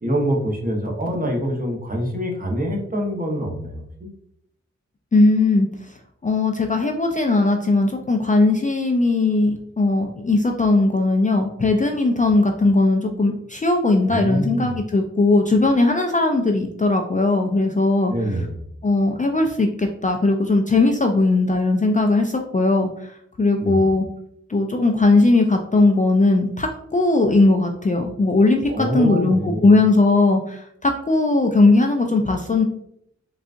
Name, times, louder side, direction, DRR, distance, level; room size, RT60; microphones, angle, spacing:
voice 1, 0.0-4.1 12.2-12.3 14.1-14.7 18.1-18.6 23.6-23.9 28.7-29.7, equal, 30° right, 0 dB, 0.9 m, -25 dB
voice 2, 5.1-5.7 6.2-18.1 18.8-24.0 24.5-32.6, left 2 dB, 25° left, 2 dB, 0.4 m, -18 dB
3.8 x 2.4 x 2.5 m, 0.71 s
cardioid pair, 40°, 29 cm